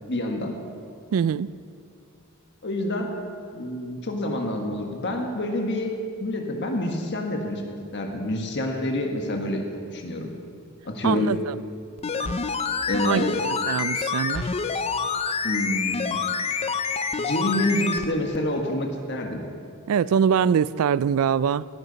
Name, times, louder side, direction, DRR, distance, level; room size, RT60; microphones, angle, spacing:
voice 1, 0.1-0.5 2.6-3.1 3.5-5.9 6.2-9.6 9.9-10.3 10.8-11.3 12.9-13.4 15.4-16.2 17.2-19.4, left 1 dB, 55° left, 2 dB, 1.5 m, -27 dB
voice 2, 1.1-1.5 11.0-11.4 12.2-12.3 13.0-13.2 13.7-14.4 19.9-21.6, right 7 dB, 70° right, 19 dB, 0.3 m, -23 dB
sound 1, 12.0-18.1 18.3-18.4, left 5 dB, 30° left, 0.5 m, -27 dB
17.5 x 10.5 x 4.1 m, 2.4 s
head